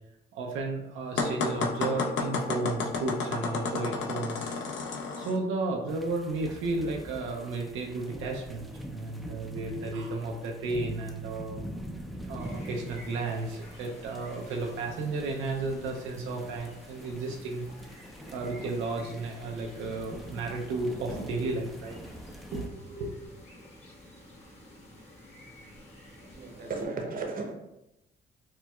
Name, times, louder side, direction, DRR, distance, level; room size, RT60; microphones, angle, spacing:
voice 1, 0.3-4.6 5.2-11.6 12.3-17.6 18.3-22.0 22.5-23.1, right 3 dB, 90° right, 0 dB, 0.5 m, -33 dB
sound 1, 1.2-5.4, left 4 dB, 70° left, 0.5 m, -31 dB
sound 2, 5.9-22.7, equal, ahead, 0.3 m, -44 dB
sound 3, 12.4-26.9, left 1 dB, 30° left, 1.1 m, -51 dB
voice 2, 26.2-27.5, right 3 dB, 45° right, 2 dB, 0.7 m, -35 dB
4.4 x 2.2 x 2.2 m, 0.87 s
cardioid pair, 90°, 20 cm